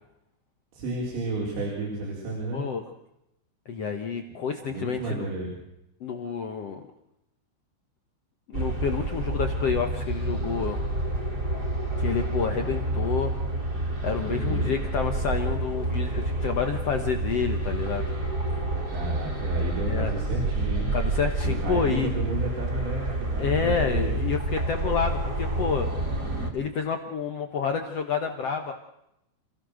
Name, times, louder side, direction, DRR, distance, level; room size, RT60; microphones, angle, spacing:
voice 1, 0.7-2.6 4.7-5.5 14.2-14.7 18.9-20.9 21.4-24.3, right 2 dB, 85° right, -3 dB, 6.5 m, -32 dB
voice 2, 2.5-2.8 3.6-5.2 6.0-6.8 8.5-10.8 12.0-13.3 14.0-18.0 19.8-20.1 20.9-22.1 23.4-25.9 26.5-28.7, left 6 dB, 90° left, 5 dB, 1.3 m, -29 dB
sound 1, 8.5-26.5, right 2 dB, 25° right, 3.0 m, -28 dB
28.5 x 17.0 x 6.5 m, 0.83 s
omnidirectional pair, 5.0 m